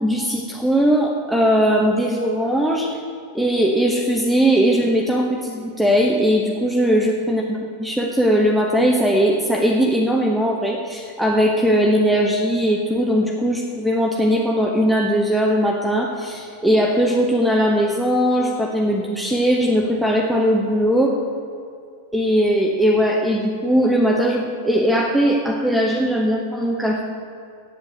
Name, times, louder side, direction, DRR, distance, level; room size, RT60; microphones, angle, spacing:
voice 1, 0.0-2.9 3.3-21.1 22.1-27.0, equal, ahead, -1 dB, 1.0 m, -19 dB
8.3 x 8.2 x 7.8 m, 2.5 s
figure-of-eight pair, 90°, 0 cm